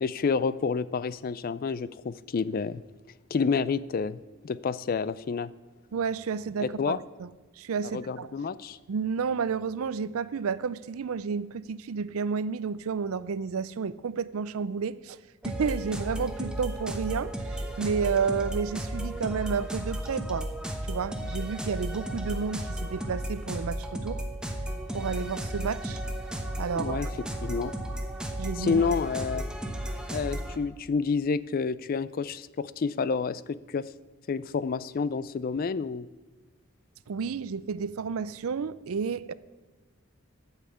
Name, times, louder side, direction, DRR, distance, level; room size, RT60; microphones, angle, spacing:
voice 1, 0.0-2.8 3.3-4.2 4.4-5.5 6.6-7.0 7.9-8.8 26.7-27.1 27.4-27.7 28.6-29.4 30.1-33.9 34.3-36.1, left 5 dB, 45° left, 17 dB, 0.3 m, -29 dB
voice 2, 5.9-7.3 7.6-8.3 8.9-15.2 15.4-20.5 20.8-24.2 24.9-26.0 26.6-27.1 28.4-28.8 37.1-39.3, right 5 dB, 80° right, 17 dB, 0.4 m, -31 dB
sound 1, 15.4-30.6, right 1 dB, 5° right, 0.9 m, -34 dB
12.0 x 5.7 x 8.4 m, 1.3 s
head